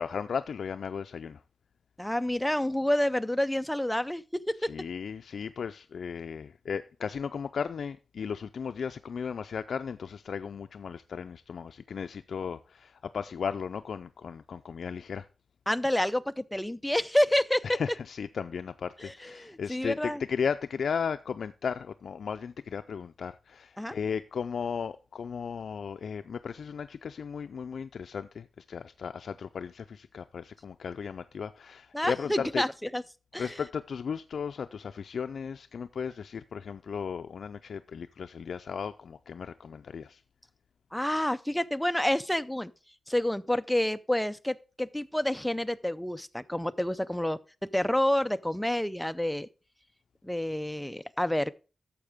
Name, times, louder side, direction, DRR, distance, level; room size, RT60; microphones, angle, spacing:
voice 1, 0.0-1.4 4.7-15.3 17.6-32.6 33.4-40.2, left 6 dB, 80° left, 0.3 m, -35 dB
voice 2, 2.0-4.7 15.7-17.8 19.0-20.2 23.8-24.0 31.9-33.0 33.3-33.6 40.9-42.7 43.1-47.4 47.7-49.5 50.2-51.5, left 1 dB, 5° left, 0.4 m, -28 dB
11.5 x 7.1 x 3.5 m
wide cardioid pair, 130°, 0 cm